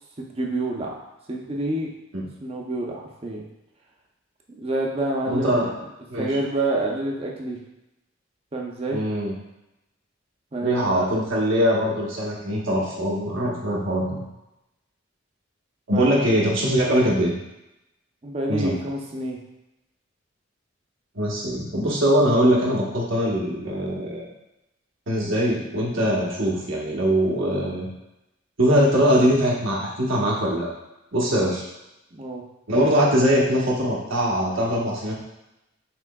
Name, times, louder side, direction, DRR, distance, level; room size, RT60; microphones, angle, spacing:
voice 1, 0.2-1.9 2.4-3.4 4.5-5.7 6.2-7.6 8.5-9.0 10.5-11.1 15.9-16.3 18.2-19.4 32.1-32.4, right 2 dB, 30° right, -1 dB, 0.6 m, -28 dB
voice 2, 5.2-5.7 6.1-6.3 8.9-9.3 10.6-14.2 15.9-17.3 18.5-18.7 21.2-24.3 25.1-27.9 28.6-30.7 31.1-31.7 32.7-35.1, equal, 85° right, -4 dB, 1.1 m, -22 dB
5.9 x 3.2 x 2.3 m, 0.91 s
head